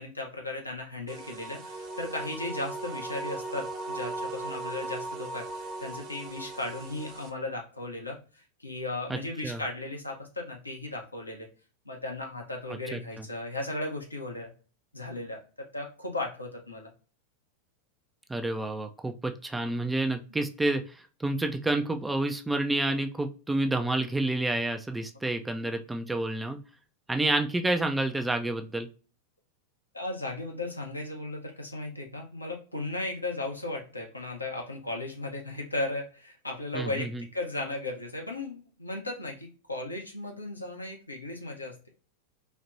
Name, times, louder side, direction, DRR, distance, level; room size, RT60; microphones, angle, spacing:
voice 1, 0.0-11.5 11.8-14.5 14.9-16.9 20.3-20.4 29.9-41.7, left 2 dB, 85° left, 1 dB, 0.9 m, -36 dB
sound 1, 1.1-7.3, right 2 dB, 35° right, 0.9 m, -38 dB
voice 2, 9.1-9.6 12.9-13.0 18.3-26.6 27.1-28.9 36.7-37.2, right 2 dB, 5° right, 6 dB, 0.4 m, -29 dB
4.2 x 2.9 x 2.6 m, 0.37 s
figure-of-eight pair, 90°, 0 cm